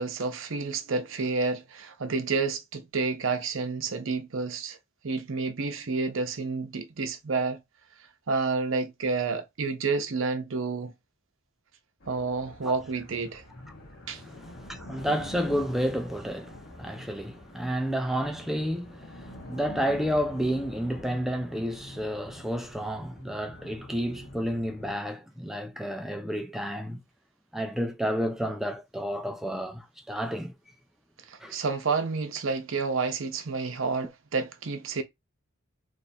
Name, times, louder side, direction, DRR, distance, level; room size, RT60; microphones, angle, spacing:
voice 1, 0.0-4.8 5.0-7.6 8.3-10.9 12.1-13.4 14.1-14.2 31.3-35.0, right 4 dB, 65° right, 0.7 m, -29 dB
sound 1, 12.0-24.9, left 1 dB, 60° left, 1.3 m, -46 dB
voice 2, 14.1-27.0 27.5-30.5 31.4-31.6, equal, ahead, 0.4 m, -31 dB
3.1 x 2.5 x 4.2 m
head